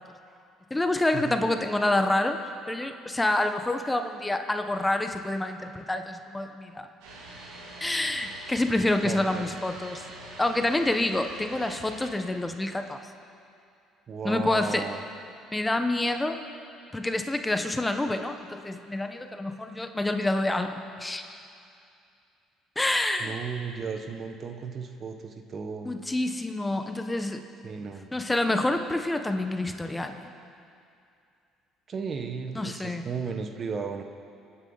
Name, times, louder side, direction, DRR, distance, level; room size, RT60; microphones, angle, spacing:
voice 1, 0.7-2.4 2.7-6.9 7.8-10.0 10.4-13.0 14.2-14.9 15.5-16.4 16.9-21.3 22.8-23.4 25.8-27.4 28.1-30.2 32.5-33.0, left 2 dB, 15° left, 7 dB, 1.1 m, -27 dB
sound 1, 7.0-12.1, right 1 dB, 80° right, 3.9 m, -44 dB
voice 2, 9.0-9.5 14.1-15.0 23.2-25.9 27.6-28.1 31.9-34.0, right 5 dB, 45° right, 6 dB, 1.3 m, -35 dB
27.0 x 10.0 x 4.1 m, 2.5 s
supercardioid pair, 70°, 0 cm